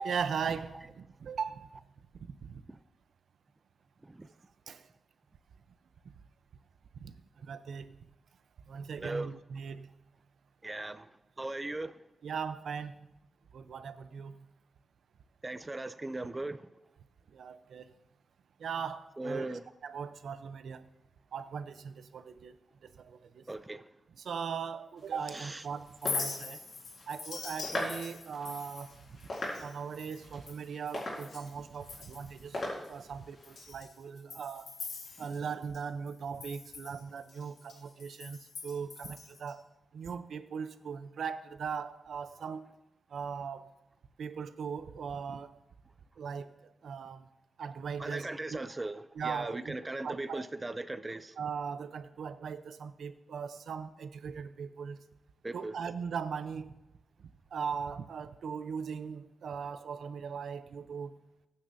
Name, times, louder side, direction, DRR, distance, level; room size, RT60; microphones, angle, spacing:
voice 1, 0.0-1.8 2.2-2.6 4.7-4.9 6.0-6.1 6.9-8.0 8.7-9.9 12.2-13.1 13.5-14.4 17.3-17.9 18.6-19.5 19.8-20.9 21.3-22.6 23.0-23.5 24.2-26.6 27.1-29.1 29.6-32.6 32.9-34.7 35.2-39.6 39.9-42.7 43.1-43.7 44.2-45.6 46.2-47.3 47.6-48.6 49.1-50.5 51.4-55.0 55.5-56.7 57.2-61.1, right 6 dB, 75° right, 0.7 m, -39 dB
voice 2, 10.6-11.1 11.4-11.9 15.4-16.6 19.2-19.6 23.5-23.8 25.3-25.6 48.0-51.3 55.4-55.7, right 2 dB, 15° right, 0.4 m, -38 dB
sound 1, 25.0-33.7, left 1 dB, 40° left, 4.8 m, -42 dB
Chink clink, 25.9-31.5 31.8-32.4 32.8-32.9 33.4-35.8 36.1-39.5, left 4 dB, 75° left, 2.1 m, -43 dB
21.5 x 9.6 x 2.7 m
wide cardioid pair, 165°, 0 cm